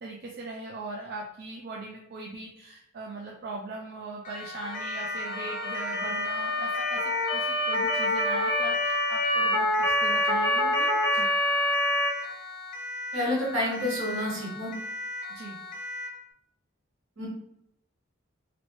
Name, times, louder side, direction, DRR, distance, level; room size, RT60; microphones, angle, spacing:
voice 1, 0.0-11.3 15.3-15.6, right 3 dB, 50° right, -1 dB, 0.4 m, -40 dB
Siren, 4.2-16.2, left 1 dB, 40° left, 0.4 m, -38 dB
Motor vehicle (road) / Siren, 4.6-12.1, left 1 dB, 70° left, 0.7 m, -26 dB
voice 2, 13.1-14.7 17.2-17.3, left 1 dB, 70° right, -4 dB, 1.4 m, -29 dB
3.0 x 2.6 x 3.0 m, 0.80 s
head